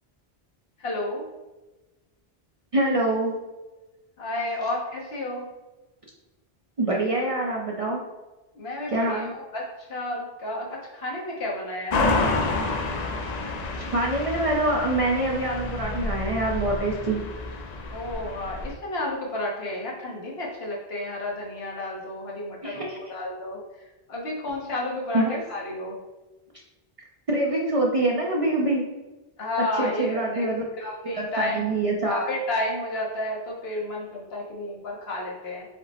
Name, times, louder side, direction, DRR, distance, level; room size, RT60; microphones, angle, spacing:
voice 1, 0.8-1.2 4.2-5.5 8.5-12.4 17.9-23.6 24.1-26.0 29.4-30.5 30.8-31.7 32.1-35.7, left 1 dB, 75° left, -2 dB, 1.2 m, -31 dB
voice 2, 2.7-3.3 6.8-8.0 8.9-9.3 13.9-17.2 22.6-23.0 25.1-25.4 27.3-28.8 29.7-30.6 31.1-32.3, right 2 dB, 45° right, -1 dB, 0.5 m, -25 dB
sound 1, 11.9-18.7, left 3 dB, 55° left, 0.5 m, -29 dB
5.0 x 2.0 x 4.1 m, 1.1 s
omnidirectional pair, 1.0 m